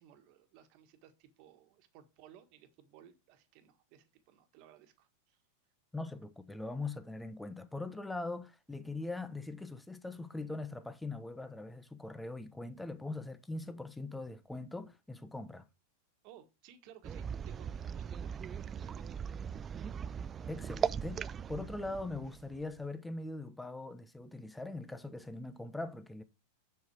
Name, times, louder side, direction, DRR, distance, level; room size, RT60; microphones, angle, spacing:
voice 1, 0.0-5.4 16.2-19.1, right 10 dB, 55° right, 1.6 m, -59 dB
voice 2, 5.9-15.6 20.5-26.2, left 2 dB, 5° left, 0.9 m, -41 dB
sound 1, 17.0-22.8, right 7 dB, 25° right, 0.3 m, -39 dB
7.0 x 6.0 x 4.7 m
hypercardioid pair, 105°, 0 cm